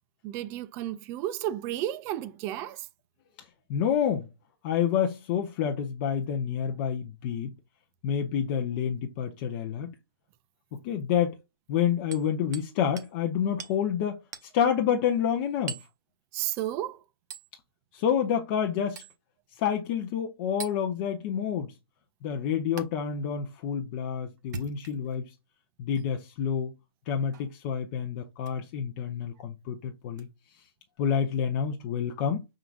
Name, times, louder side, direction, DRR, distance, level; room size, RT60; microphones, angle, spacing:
voice 1, 0.2-2.9 16.3-17.0, right 13 dB, 20° right, 0.4 m, -32 dB
voice 2, 3.7-4.3 4.6-7.5 8.0-9.9 10.8-11.4 11.7-15.8 17.9-19.0 19.5-21.7 22.2-25.3 25.8-26.7 27.1-30.3 31.0-32.5, left 8 dB, 30° left, 0.6 m, -28 dB
Hammer, 12.1-12.7 13.0-13.1 13.6-13.8 14.3-14.5 15.7-15.9 17.3-17.5 19.0-19.2 20.6-20.8 22.8-22.9 24.4-25.2 25.9-26.1 27.3-27.5 28.4-28.6 30.1-30.2, right 6 dB, 45° right, 0.9 m, -41 dB
5.7 x 3.7 x 2.3 m
figure-of-eight pair, 135°, 13 cm